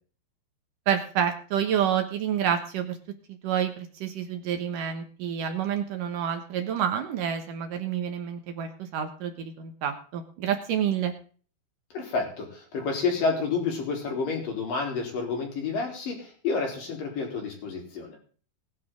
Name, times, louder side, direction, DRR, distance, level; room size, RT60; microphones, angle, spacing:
voice 1, 0.9-3.0 3.3-11.1, right 9 dB, 75° right, 6 dB, 1.9 m, -28 dB
voice 2, 11.9-18.2, left 4 dB, 45° left, 1 dB, 5.1 m, -29 dB
20.0 x 10.5 x 3.8 m, 0.41 s
omnidirectional pair, 5.7 m